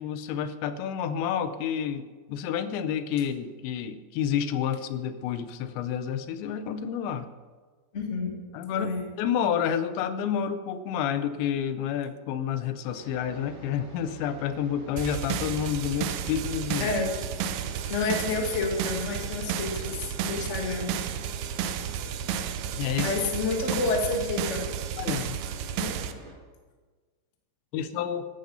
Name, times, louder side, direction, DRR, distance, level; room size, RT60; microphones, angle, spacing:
voice 1, 0.0-7.3 8.5-8.9 9.2-16.9 17.9-18.0 22.8-23.1 25.0-25.4 27.7-28.3, left 8 dB, 85° left, 11 dB, 3.0 m, -29 dB
voice 2, 7.9-8.3 8.7-9.0 16.8-17.1 17.9-20.9 23.0-24.6 25.8-25.9, left 3 dB, 40° left, 1 dB, 1.0 m, -29 dB
sound 1, 12.9-26.3, right 2 dB, 55° right, 3.6 m, -46 dB
sound 2, 15.0-26.1, right 8 dB, 80° right, 2.3 m, -32 dB
14.5 x 12.0 x 5.6 m, 1.4 s
omnidirectional pair, 5.1 m